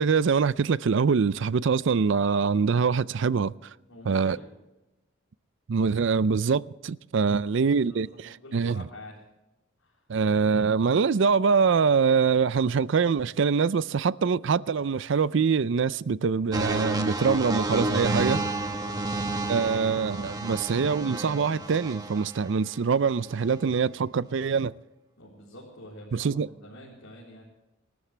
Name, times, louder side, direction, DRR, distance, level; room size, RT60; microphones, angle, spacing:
voice 1, 0.0-3.5 4.0-4.4 5.7-8.8 10.1-18.4 19.5-24.7 26.1-26.5, right 5 dB, 65° right, 0.4 m, -24 dB
voice 2, 3.9-4.5 7.4-7.5 7.8-9.2 9.8-10.0 18.8-19.0 25.2-27.4, left 1 dB, 85° left, 4.2 m, -47 dB
sound 1, 16.5-22.5 23.3-23.5, right 2 dB, 20° right, 1.2 m, -30 dB
26.5 x 12.5 x 3.3 m
head